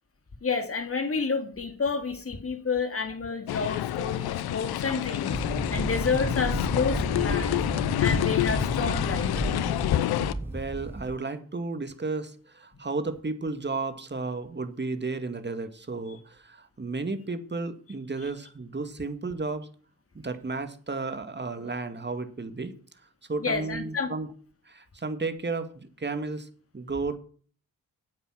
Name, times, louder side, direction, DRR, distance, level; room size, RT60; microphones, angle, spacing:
voice 1, 0.4-5.4 5.7-7.6 8.0-9.3 23.4-24.1, left 5 dB, 35° left, 6 dB, 2.7 m, -29 dB
sound 1, 3.5-10.3, left 13 dB, 70° left, 0.8 m, -28 dB
sound 2, 5.3-11.2, right 2 dB, 5° right, 0.6 m, -32 dB
voice 2, 10.4-19.7 20.1-22.7 23.3-24.3 24.7-26.5 26.7-27.2, right 3 dB, 25° right, 9 dB, 2.2 m, -33 dB
10.0 x 8.2 x 5.9 m, 0.43 s
hypercardioid pair, 45°, 39 cm